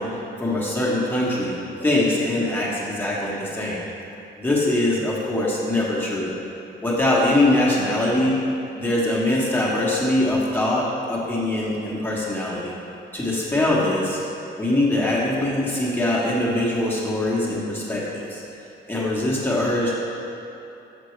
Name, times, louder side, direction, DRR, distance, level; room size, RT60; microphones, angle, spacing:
voice 1, 0.0-3.8 4.4-6.3 6.8-8.4 8.7-12.7 13.1-14.2 14.6-18.4 18.9-19.9, left 1 dB, 10° left, -7 dB, 1.2 m, -22 dB
6.9 x 5.9 x 3.2 m, 2.9 s
cardioid pair, 90°, 20 cm